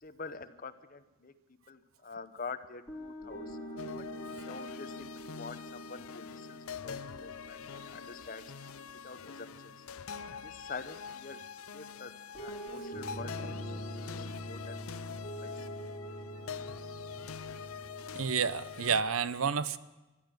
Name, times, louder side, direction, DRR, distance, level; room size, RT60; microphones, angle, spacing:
voice 1, 0.0-1.3 1.7-3.6 4.0-8.4 9.0-9.9 10.4-11.4 11.7-12.1 12.4-14.8 15.4-15.7, left 4 dB, 40° left, 11 dB, 0.8 m, -46 dB
sound 1, 2.9-11.0 12.3-19.0, equal, 5° left, 3.9 m, -45 dB
sound 2, 3.8-19.0, left 7 dB, 90° left, 0.6 m, -45 dB
voice 2, 18.1-19.8, right 6 dB, 85° right, 15 dB, 0.7 m, -30 dB
14.5 x 12.5 x 7.6 m, 1.1 s
head